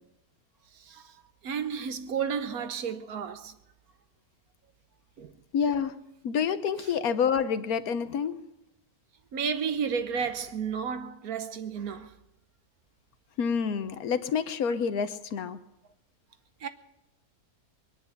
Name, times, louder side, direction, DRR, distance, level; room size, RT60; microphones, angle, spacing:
voice 1, 0.7-1.1 1.4-3.5 5.2-5.3 9.3-12.1 16.6-16.7, right 6 dB, 70° right, 1.4 m, -32 dB
voice 2, 5.5-6.0 6.2-8.4 13.4-15.6, left 6 dB, 70° left, 1.2 m, -28 dB
21.5 x 10.5 x 6.5 m
omnidirectional pair, 1.7 m